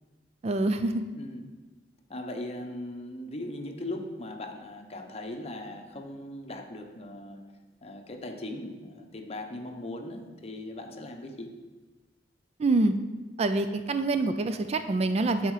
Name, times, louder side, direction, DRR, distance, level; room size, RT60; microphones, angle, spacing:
voice 1, 0.4-1.0 12.6-12.9 13.4-15.5, right 2 dB, 35° right, 9 dB, 0.4 m, -26 dB
voice 2, 2.1-7.4 7.8-11.5, left 1 dB, 35° left, 3 dB, 0.9 m, -39 dB
10.0 x 4.3 x 4.8 m, 1.3 s
head